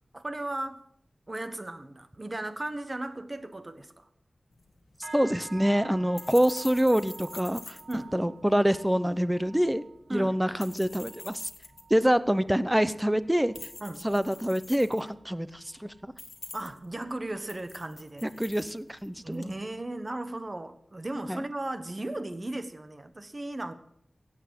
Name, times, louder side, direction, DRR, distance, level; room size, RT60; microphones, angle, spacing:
voice 1, 0.1-0.8 1.3-4.1 7.9-8.1 10.1-10.4 13.8-14.0 16.5-18.3 19.2-23.7, right 2 dB, 35° right, 11 dB, 1.3 m, -36 dB
sound 1, 4.5-19.6, left 3 dB, 60° left, 1.5 m, -48 dB
sound 2, 5.0-14.6 14.9-15.3 15.7-16.0 16.6-16.7, right 4 dB, 70° right, 3.0 m, -50 dB
voice 2, 5.1-7.8 8.1-9.8 10.1-11.5 11.9-13.5 14.0-16.1 18.2-19.5 21.3-21.4, equal, 10° right, 15 dB, 0.8 m, -26 dB
16.5 x 8.1 x 7.7 m, 0.70 s
wide cardioid pair, 75°, 0 cm